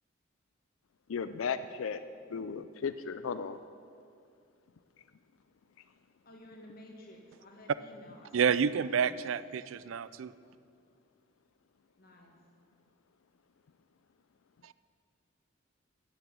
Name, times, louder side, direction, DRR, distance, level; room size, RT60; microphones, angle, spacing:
voice 1, 1.1-2.0 2.3-3.6, left 6 dB, 85° left, 12 dB, 0.4 m, -35 dB
voice 2, 6.3-9.2 12.0-12.3, left 1 dB, 50° left, 1 dB, 1.9 m, -53 dB
voice 3, 8.3-10.3 14.6-14.7, right 7 dB, 80° right, 17 dB, 0.4 m, -29 dB
13.0 x 6.9 x 8.7 m, 2.3 s
head